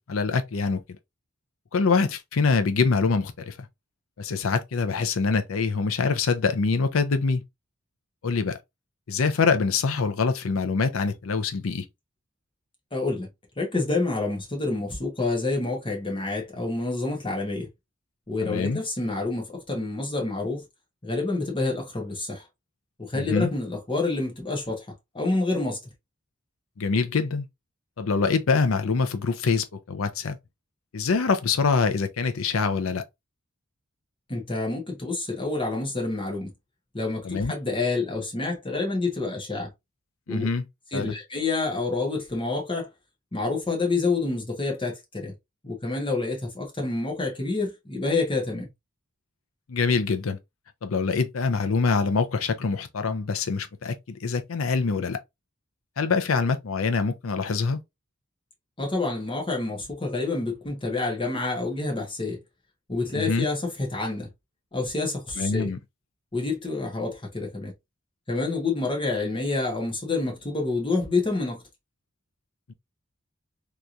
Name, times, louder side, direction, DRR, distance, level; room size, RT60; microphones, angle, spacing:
voice 1, 0.1-0.8 1.7-3.6 4.2-7.4 8.2-8.6 9.1-11.9 18.4-18.8 23.1-23.5 26.8-27.5 28.0-30.4 30.9-33.0 37.2-37.5 40.3-40.6 40.9-41.1 49.7-50.4 50.8-55.2 56.0-57.8 63.1-63.5 65.4-65.8 72.7-72.8, left 4 dB, 80° left, 0.5 m, -24 dB
voice 2, 12.9-13.3 13.6-17.7 18.3-20.6 21.0-22.4 23.0-24.9 25.1-25.8 34.3-36.5 36.9-39.7 40.3-40.5 40.9-42.9 43.3-45.3 45.6-48.7 58.8-62.4 62.9-64.3 64.7-65.7 66.3-67.7 68.3-71.6, left 3 dB, 25° left, 1.2 m, -28 dB
3.5 x 2.9 x 2.5 m
head